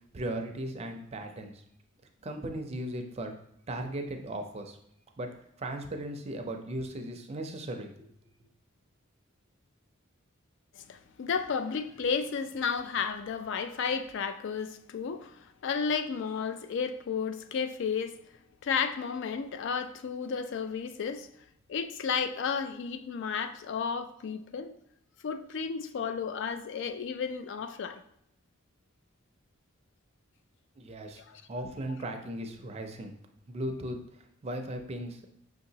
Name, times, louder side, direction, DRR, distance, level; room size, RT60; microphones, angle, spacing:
voice 1, 0.1-1.6 2.2-3.3 3.7-4.8 5.2-5.3 5.6-8.1 30.8-31.2 31.5-33.1 33.5-34.0 34.4-35.3, right 1 dB, 30° right, 5 dB, 0.4 m, -37 dB
voice 2, 10.8-18.2 18.6-21.3 21.7-24.7 25.2-28.0 31.2-31.4, left 6 dB, 60° left, 10 dB, 0.3 m, -33 dB
5.8 x 2.8 x 2.7 m, 0.74 s
head